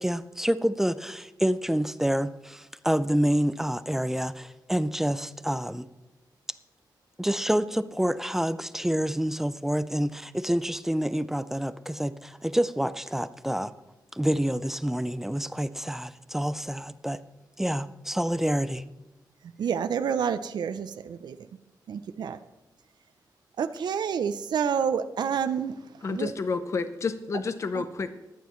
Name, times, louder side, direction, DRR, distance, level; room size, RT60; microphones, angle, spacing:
voice 1, 0.0-5.9 7.2-13.7 14.1-17.2 17.6-18.8, equal, 5° right, 13 dB, 0.4 m, -27 dB
voice 2, 19.6-21.4 21.9-22.4 23.6-25.8 26.1-26.3 27.7-27.8, right 7 dB, 80° right, 10 dB, 0.6 m, -28 dB
voice 3, 26.0-28.1, left 4 dB, 40° left, 10 dB, 0.7 m, -30 dB
23.0 x 9.2 x 3.1 m, 1.0 s
wide cardioid pair, 145°, 7 cm